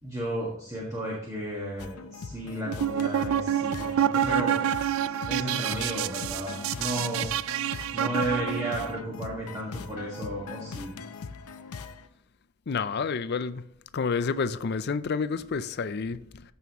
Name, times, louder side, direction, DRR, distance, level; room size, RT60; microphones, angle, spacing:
voice 1, 0.0-4.6 5.3-7.3 7.9-11.0, equal, 15° right, 1.8 m, -33 dB
sound 1, 1.8-12.1, left 5 dB, 90° left, 0.6 m, -41 dB
sound 2, 2.7-9.0, right 10 dB, 65° right, 0.3 m, -28 dB
voice 2, 12.7-13.6 13.9-16.4, left 5 dB, 50° left, 0.4 m, -29 dB
14.0 x 5.5 x 3.0 m
head